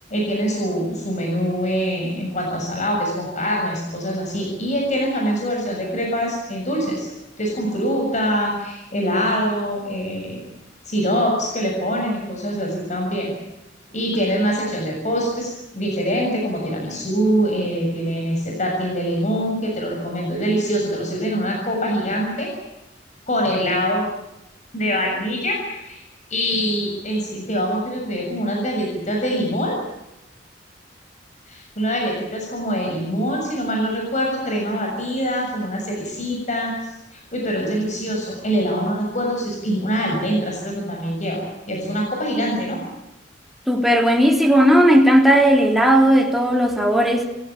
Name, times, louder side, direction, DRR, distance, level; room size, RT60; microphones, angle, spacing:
voice 1, 0.1-7.1 7.4-10.4 10.9-13.3 13.9-22.5 23.3-24.1 24.7-26.0 26.3-29.8 31.5-36.7 37.1-42.8, equal, 40° left, 7.1 m, -24 dB
voice 2, 43.7-47.3, equal, ahead, 3.3 m, -15 dB
26.5 x 17.0 x 8.8 m
head